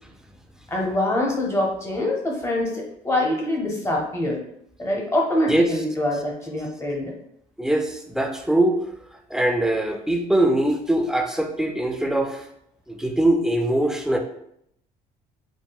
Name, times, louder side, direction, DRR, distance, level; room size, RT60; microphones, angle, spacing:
voice 1, 0.7-4.4 4.8-7.1, left 1 dB, 15° left, -1 dB, 0.8 m, -24 dB
voice 2, 7.6-8.8 9.3-12.4 12.9-14.2, right 1 dB, 5° right, 3 dB, 0.3 m, -22 dB
3.6 x 2.1 x 2.2 m, 0.73 s
cardioid pair, 110°, 17 cm